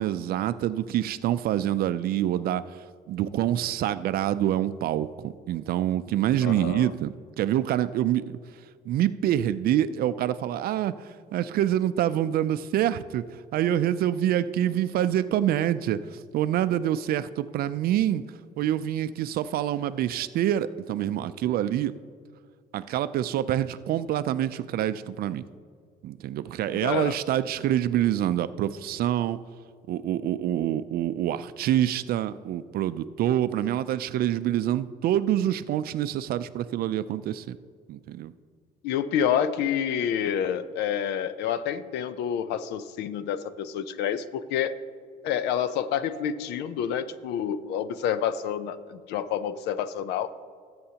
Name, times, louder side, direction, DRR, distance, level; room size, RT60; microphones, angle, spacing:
voice 1, 0.0-8.4 8.9-13.2 13.5-18.2 18.6-21.9 22.7-25.4 26.0-29.4 29.9-37.6 37.9-38.3, right 11 dB, 65° right, 13 dB, 0.4 m, -26 dB
voice 2, 6.4-6.9 26.8-27.2 38.8-44.8 45.2-50.3, left 9 dB, 85° left, 13 dB, 0.6 m, -28 dB
18.5 x 7.8 x 2.9 m, 2.1 s
cardioid pair, 110°, 17 cm